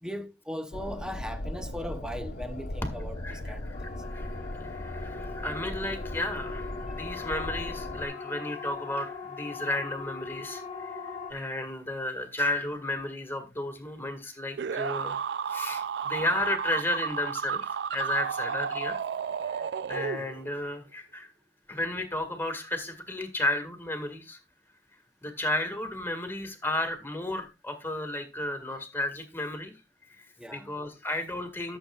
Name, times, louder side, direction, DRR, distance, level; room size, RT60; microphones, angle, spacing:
voice 1, 0.0-3.9 8.1-8.3 30.4-30.7, equal, 5° right, 0.8 m, -39 dB
sound 1, 0.7-8.0, left 1 dB, 70° left, 1.1 m, -38 dB
voice 2, 3.2-11.0 11.3-15.2 15.5-19.0 19.5-21.3 21.7-24.4 25.2-29.7 30.2-31.8, left 1 dB, 15° left, 1.9 m, -33 dB
Siren, 3.7-11.3, left 4 dB, 45° left, 1.5 m, -40 dB
sound 2, 14.6-20.6, right 7 dB, 70° right, 0.4 m, -32 dB
13.5 x 7.2 x 2.4 m
head